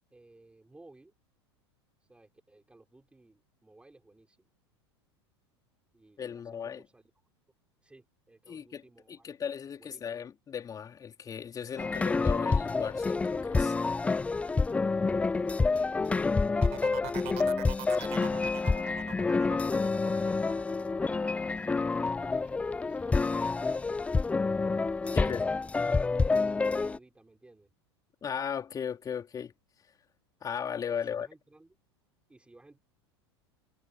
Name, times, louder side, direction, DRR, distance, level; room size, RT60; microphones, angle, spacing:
voice 1, 0.1-1.1 2.0-4.5 5.9-7.1 7.8-9.4 9.8-10.3 15.7-16.8 17.8-20.4 20.7-24.0 25.0-27.7 30.9-31.8 32.3-32.8, right 2 dB, 10° right, 5.5 m, -58 dB
voice 2, 6.2-6.8 8.5-8.8 9.1-13.7 14.7-14.8 25.1-25.5 28.2-29.5 30.4-31.3, left 7 dB, 25° left, 3.8 m, -36 dB
sound 1, 11.8-27.0, left 4 dB, 10° left, 0.4 m, -28 dB
sound 2, 16.6-22.2 22.6-23.1, right 23 dB, 45° right, 7.2 m, -44 dB
figure-of-eight pair, 80°, 15 cm